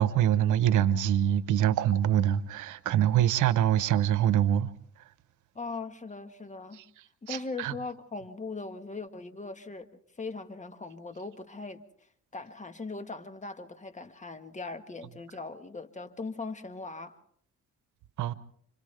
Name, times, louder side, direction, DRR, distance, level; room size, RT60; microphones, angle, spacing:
voice 1, 0.0-4.7 7.3-7.7 18.2-18.3, right 11 dB, 85° right, 1.0 m, -24 dB
voice 2, 5.5-6.8 7.2-9.9 10.2-11.8 12.3-17.2, left 3 dB, 25° left, 1.5 m, -39 dB
29.5 x 26.5 x 3.4 m
cardioid pair, 90°, 30 cm